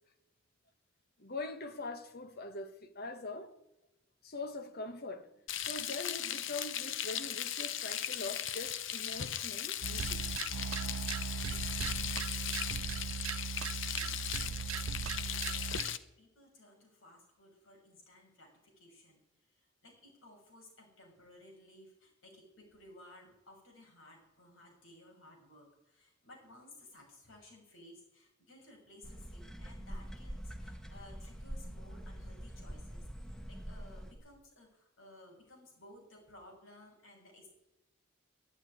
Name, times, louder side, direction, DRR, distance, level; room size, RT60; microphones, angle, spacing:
voice 1, 1.2-3.5 4.2-5.3 5.7-10.3, left 3 dB, 55° left, 1.5 m, -43 dB
Frying (food), 5.5-16.0, left 10 dB, 70° left, 0.9 m, -38 dB
sound 1, 9.8-16.0, right 7 dB, 85° right, 0.5 m, -38 dB
voice 2, 11.3-19.2 19.5-37.5, left 1 dB, 90° left, 6.8 m, -58 dB
sound 2, 29.0-34.1, equal, 5° left, 1.4 m, -45 dB
12.0 x 10.5 x 9.9 m
head